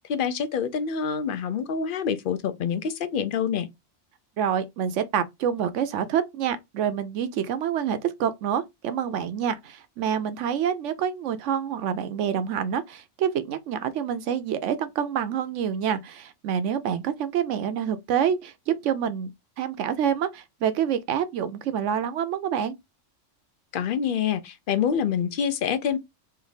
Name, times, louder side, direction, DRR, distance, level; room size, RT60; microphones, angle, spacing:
voice 1, 0.1-3.7 23.7-26.0, left 7 dB, 65° left, 0.5 m, -26 dB
voice 2, 4.4-19.3 19.6-22.8, right 8 dB, 75° right, 0.9 m, -27 dB
3.2 x 2.6 x 3.9 m
omnidirectional pair, 1.3 m